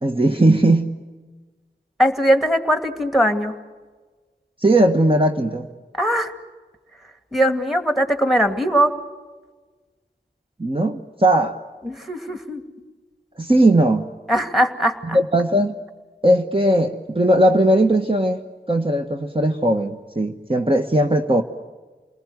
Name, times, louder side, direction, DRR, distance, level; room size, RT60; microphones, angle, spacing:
voice 1, 0.0-0.9 4.6-5.7 10.6-11.6 13.4-14.1 15.1-15.8 16.2-18.4 18.7-21.4, right 1 dB, 30° right, 3 dB, 1.3 m, -18 dB
voice 2, 2.0-3.6 5.9-6.3 7.0-9.0 11.8-12.6 14.3-15.2, equal, ahead, 7 dB, 2.4 m, -20 dB
29.0 x 20.0 x 9.5 m, 1.3 s
wide cardioid pair, 45°, 19 cm